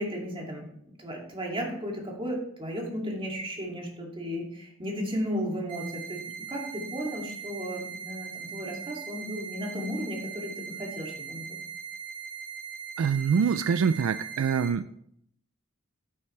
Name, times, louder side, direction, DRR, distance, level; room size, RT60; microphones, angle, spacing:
voice 1, 0.0-6.2 6.5-11.6, equal, 25° right, -1 dB, 2.3 m, -34 dB
sound 1, 5.7-14.7, right 7 dB, 40° right, 4.1 m, -40 dB
voice 2, 13.0-14.9, right 6 dB, 75° right, 13 dB, 0.4 m, -25 dB
10.0 x 9.4 x 3.2 m, 0.71 s
head